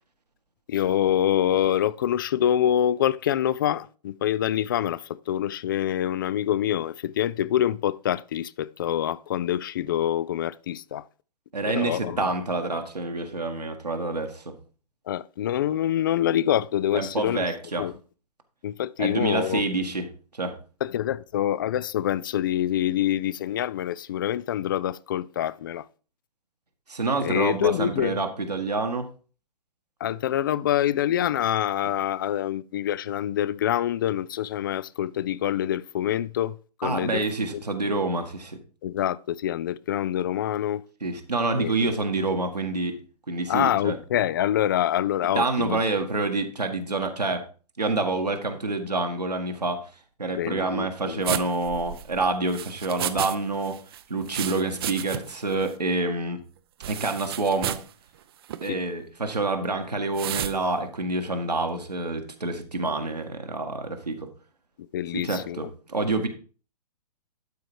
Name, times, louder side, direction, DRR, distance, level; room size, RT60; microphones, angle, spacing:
voice 1, 0.7-11.0 11.7-12.3 15.1-17.5 17.8-18.0 18.6-19.7 20.8-25.9 27.2-28.2 30.0-37.2 37.5-37.6 38.8-40.8 41.6-42.0 43.5-45.8 50.4-51.2 58.7-58.8 64.9-65.7, left 11 dB, 35° left, 0.3 m, -26 dB
voice 2, 11.5-14.6 16.9-17.9 19.0-20.1 20.3-20.6 26.9-29.1 31.8-31.9 36.8-38.6 41.0-43.0 43.3-44.0 45.4-47.4 47.8-49.9 50.2-53.8 54.1-56.4 56.9-57.8 58.6-64.3 65.1-66.3, right 3 dB, 80° right, 1.7 m, -27 dB
sound 1, 51.2-53.4 53.6-55.4 55.7-55.8 56.8-57.9 58.4-58.7 60.1-60.6, right 11 dB, 40° right, 0.6 m, -32 dB
11.5 x 5.0 x 4.7 m
figure-of-eight pair, 120°, 21 cm